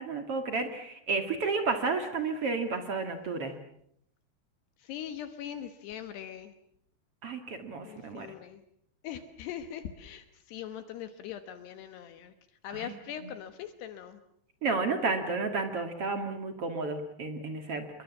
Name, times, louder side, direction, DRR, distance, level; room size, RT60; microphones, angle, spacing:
voice 1, 0.0-3.5 7.2-8.3 12.7-12.9 13.2-13.3 14.6-17.8, right 4 dB, 50° right, 7 dB, 1.9 m, -32 dB
voice 2, 4.8-6.5 7.8-8.6 9.0-12.3 12.6-14.2, left 10 dB, 75° left, 10 dB, 3.1 m, -41 dB
27.5 x 23.0 x 7.2 m, 0.69 s
omnidirectional pair, 5.1 m